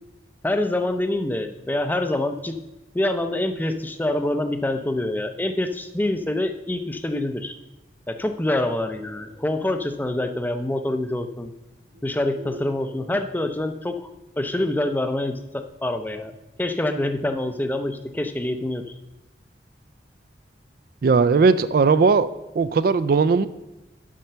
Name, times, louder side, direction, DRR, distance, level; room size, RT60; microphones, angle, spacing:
voice 1, 0.4-2.6 2.9-7.5 8.1-11.5 12.0-14.0 14.4-16.3 16.6-18.8, left 1 dB, 10° left, 8 dB, 0.5 m, -26 dB
sound 1, 8.4-9.6 11.0-11.1 11.8-13.2, right 1 dB, 85° right, 1.8 m, -45 dB
voice 2, 21.0-22.3 22.6-23.5, right 4 dB, 55° right, 14 dB, 0.3 m, -18 dB
7.4 x 5.7 x 6.7 m, 0.95 s
head